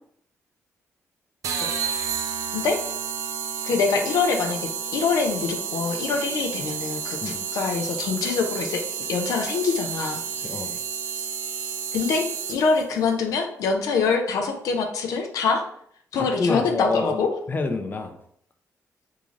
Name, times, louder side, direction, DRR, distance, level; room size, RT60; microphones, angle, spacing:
sound 1, 1.4-12.8, right 7 dB, 85° right, 0.5 m, -31 dB
voice 1, 1.6-2.1 2.5-2.8 3.6-4.6 4.9-8.8 9.1-10.2 11.9-15.6 16.1-17.3, left 4 dB, 85° left, 4 dB, 0.5 m, -24 dB
voice 2, 10.3-10.8 16.1-17.2 17.5-18.2, left 3 dB, 35° left, 5 dB, 0.5 m, -28 dB
3.6 x 2.5 x 3.1 m, 0.66 s
cardioid pair, 80°, 6 cm